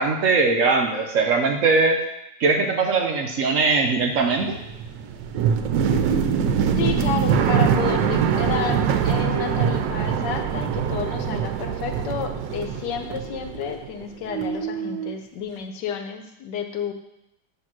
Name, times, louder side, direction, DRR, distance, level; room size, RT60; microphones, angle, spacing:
voice 1, 0.0-2.0 2.4-4.6, right 4 dB, 60° right, 2 dB, 0.9 m, -20 dB
sound 1, 3.9-14.0 14.3-15.1, right 7 dB, 80° right, 1.3 m, -23 dB
voice 2, 6.8-16.9, left 7 dB, 75° left, 6 dB, 1.2 m, -31 dB
8.6 x 2.9 x 6.0 m, 0.85 s
omnidirectional pair, 2.0 m